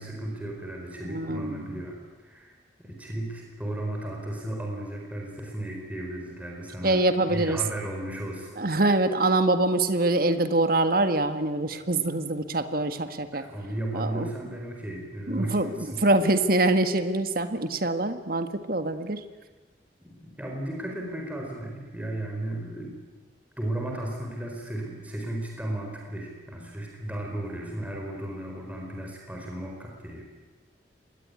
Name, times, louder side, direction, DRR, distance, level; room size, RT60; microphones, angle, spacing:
voice 1, 0.0-2.0 2.2-2.5 2.8-7.0 7.3-8.5 13.3-16.0 20.0-22.9 23.6-30.2, right 1 dB, 10° right, 0 dB, 4.7 m, -35 dB
voice 2, 1.1-1.8 6.8-7.6 8.6-13.4 13.9-14.3 15.3-19.2, right 2 dB, 55° right, 9 dB, 1.7 m, -24 dB
25.0 x 20.5 x 9.8 m, 1.3 s
head